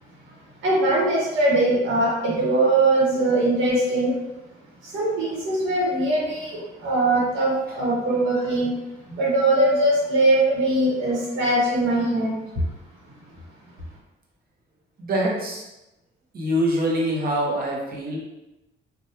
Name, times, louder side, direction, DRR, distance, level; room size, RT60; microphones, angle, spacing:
voice 1, 0.6-4.1 4.8-8.7 9.1-12.3, right 2 dB, 75° right, -5 dB, 1.1 m, -21 dB
voice 2, 15.0-15.6 16.3-18.2, equal, 50° right, -2 dB, 0.9 m, -24 dB
3.0 x 2.3 x 2.8 m, 0.96 s
cardioid pair, 90°, 20 cm